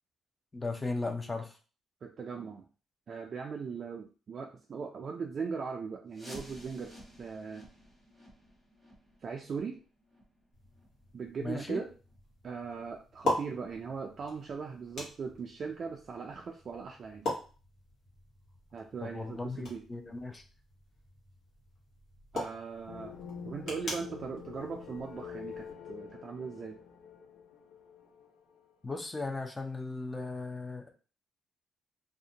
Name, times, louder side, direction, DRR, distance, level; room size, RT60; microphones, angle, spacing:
voice 1, 0.5-1.6 11.4-11.8 19.0-20.4 28.8-30.9, left 3 dB, 25° left, 5 dB, 0.5 m, -37 dB
voice 2, 2.0-2.7 3.1-7.7 9.2-9.8 11.1-11.9 12.4-17.3 18.7-19.8 22.3-23.1 23.4-26.8, right 5 dB, 50° right, 2 dB, 0.3 m, -39 dB
sound 1, 6.1-11.7 12.0-12.2 12.7-12.8 13.4-13.5 14.0-14.1, equal, 5° left, 1.0 m, -53 dB
sound 2, 10.5-25.7, left 1 dB, 70° left, 1.1 m, -42 dB
sound 3, 22.9-28.7, left 7 dB, 90° left, 0.3 m, -46 dB
2.5 x 2.1 x 2.8 m, 0.36 s
cardioid pair, 90°, 0 cm